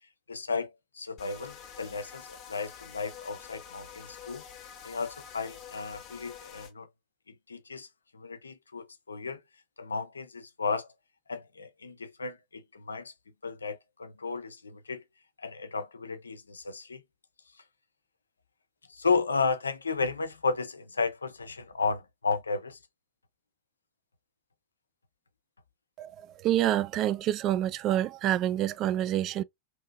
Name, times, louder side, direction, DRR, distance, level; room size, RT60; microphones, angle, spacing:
voice 1, 0.3-4.4 4.8-6.9 7.5-7.9 8.1-9.4 9.8-10.9 11.3-13.1 13.4-15.0 15.4-17.0 18.9-22.8, left 4 dB, 75° left, 0.5 m, -33 dB
sound 1, 1.2-6.7, left 8 dB, 35° left, 0.9 m, -47 dB
voice 2, 26.0-29.4, right 12 dB, 35° right, 0.3 m, -27 dB
2.8 x 2.7 x 3.3 m
figure-of-eight pair, 90°, 0 cm